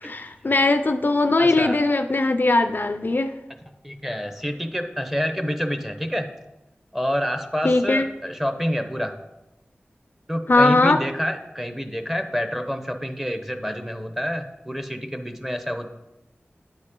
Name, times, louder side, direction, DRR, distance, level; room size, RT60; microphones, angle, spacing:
voice 1, 0.0-3.3 7.6-8.1 10.5-11.0, left 2 dB, 50° left, 8 dB, 0.3 m, -20 dB
voice 2, 1.4-1.8 3.8-6.3 6.9-9.2 10.3-15.9, equal, 5° right, 7 dB, 0.7 m, -28 dB
9.0 x 4.1 x 3.7 m, 0.96 s
wide cardioid pair, 50°, 4 cm